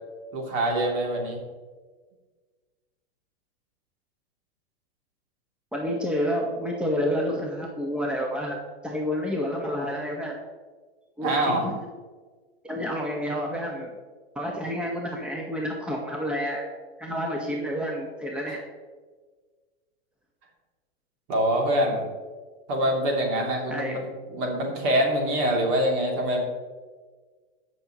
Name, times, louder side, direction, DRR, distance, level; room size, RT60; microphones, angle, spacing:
voice 1, 0.3-1.4 11.2-11.6 21.3-22.0 22.7-24.1 24.3-26.4, right 1 dB, 50° right, 0 dB, 2.8 m, -24 dB
voice 2, 5.7-8.6 8.8-10.4 11.2-11.7 12.6-13.9 14.3-16.6 17.0-18.6 23.7-24.1, equal, 5° right, 0 dB, 1.2 m, -29 dB
17.5 x 6.2 x 3.0 m, 1.4 s
hypercardioid pair, 115°, 31 cm